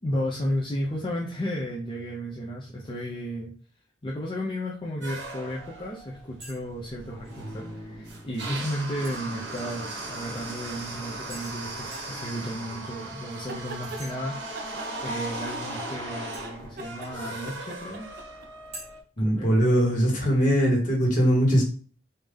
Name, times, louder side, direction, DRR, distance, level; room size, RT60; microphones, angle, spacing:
voice 1, 0.0-3.5 4.0-14.4 14.6-18.1 18.8-18.9 19.2-19.5, equal, 25° left, -4 dB, 0.6 m, -33 dB
sound 1, 5.0-19.0, right 2 dB, 80° right, 1.2 m, -38 dB
sound 2, 6.4-6.6 6.9-7.4 9.0-9.9 11.3-11.6 11.9-12.2 13.8-14.1 16.3-17.2 18.7-18.8, right 1 dB, 35° right, 1.5 m, -45 dB
sound 3, 13.3-14.0 14.5-15.9 16.3-18.5, right 2 dB, 50° right, 0.4 m, -42 dB
voice 2, 19.2-21.6, equal, 45° left, -3 dB, 1.5 m, -21 dB
3.5 x 2.8 x 3.3 m, 0.41 s
head